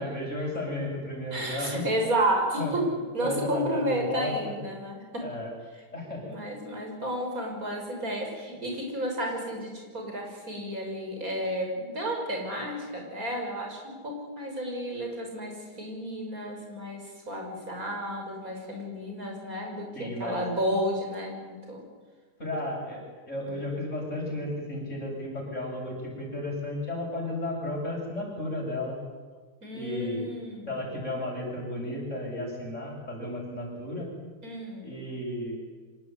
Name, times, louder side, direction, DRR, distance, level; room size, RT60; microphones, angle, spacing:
voice 1, 0.0-1.8 2.6-2.7 3.2-4.3 5.2-5.5 5.9-6.2 19.9-20.4 22.4-29.0 29.7-30.2 30.7-34.1 34.8-35.8, left 1 dB, 45° left, -2 dB, 8.5 m, -33 dB
voice 2, 1.3-5.3 6.3-21.8 23.5-23.6 29.6-30.8 34.4-34.9, right 1 dB, 55° right, 2 dB, 6.4 m, -32 dB
25.5 x 19.0 x 9.8 m, 1.4 s
omnidirectional pair, 1.8 m